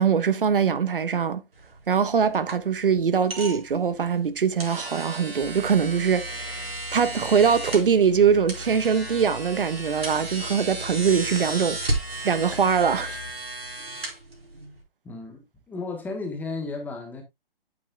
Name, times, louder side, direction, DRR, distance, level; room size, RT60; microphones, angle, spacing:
voice 1, 0.0-1.4 1.9-12.0 12.2-13.2, right 6 dB, 65° right, 1.1 m, -22 dB
sound 1, 1.5-14.8, right 2 dB, 85° right, 4.7 m, -35 dB
sound 2, 5.4-13.3, left 3 dB, 45° left, 1.0 m, -42 dB
voice 2, 15.0-17.2, left 3 dB, 5° left, 1.2 m, -34 dB
8.7 x 8.4 x 2.3 m
figure-of-eight pair, 145°, 29 cm